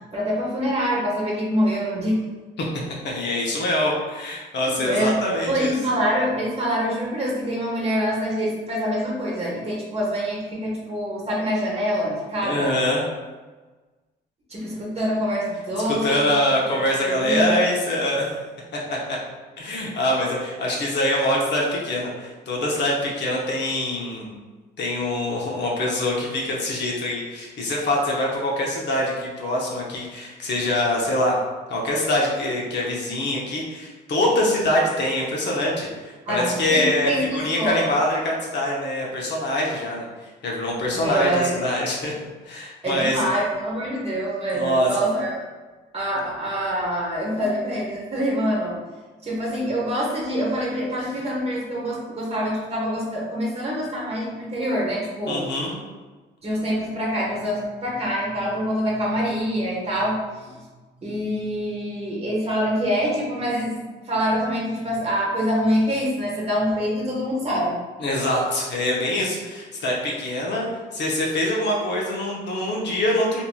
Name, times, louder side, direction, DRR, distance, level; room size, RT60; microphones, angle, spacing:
voice 1, 0.1-2.2 4.7-5.2 5.4-12.7 14.5-16.3 16.7-17.6 36.3-37.9 40.9-41.5 42.8-45.4 45.9-48.8 49.2-55.4 56.4-60.6 61.0-63.8 64.0-67.8, equal, 30° right, -4 dB, 1.0 m, -25 dB
voice 2, 3.0-5.8 12.4-13.0 15.8-18.3 18.9-19.2 19.6-24.3 24.8-31.4 31.7-42.1 42.4-43.2 44.5-44.9 55.3-55.7 68.0-70.7 70.9-73.5, left 1 dB, 60° left, -3 dB, 0.8 m, -24 dB
2.9 x 2.6 x 2.2 m, 1.3 s
cardioid pair, 85°, 20 cm